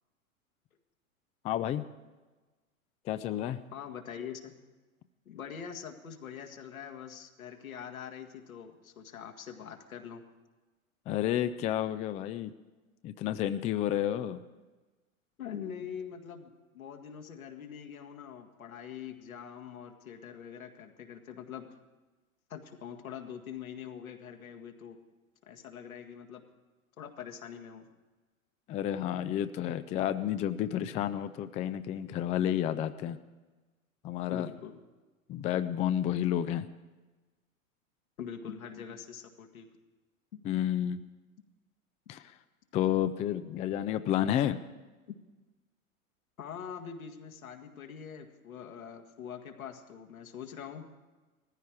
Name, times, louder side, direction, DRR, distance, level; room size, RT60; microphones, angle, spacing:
voice 1, 1.4-1.8 3.1-3.6 11.1-12.5 13.0-14.4 28.7-33.2 34.0-34.5 35.3-36.7 40.4-41.0 42.1-42.3 42.7-44.6, left 11 dB, 15° left, 11 dB, 0.4 m, -30 dB
voice 2, 3.7-4.5 5.3-10.2 15.4-21.8 22.5-25.0 25.5-26.4 27.0-27.9 34.3-34.8 38.2-39.7 40.3-40.4 46.4-50.9, left 8 dB, 80° left, 4 dB, 2.0 m, -44 dB
19.0 x 14.5 x 4.7 m, 1.2 s
hypercardioid pair, 100°, 41 cm